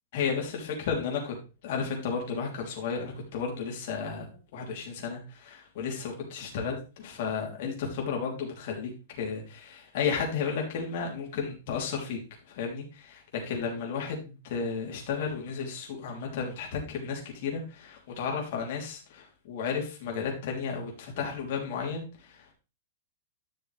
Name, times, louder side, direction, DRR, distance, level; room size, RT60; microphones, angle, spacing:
voice 1, 0.1-1.3 1.6-4.3 4.5-8.9 9.2-12.2 12.5-22.5, left 6 dB, 45° left, 0 dB, 3.1 m, -33 dB
11.0 x 6.4 x 3.4 m, 0.31 s
supercardioid pair, 170°, 0 cm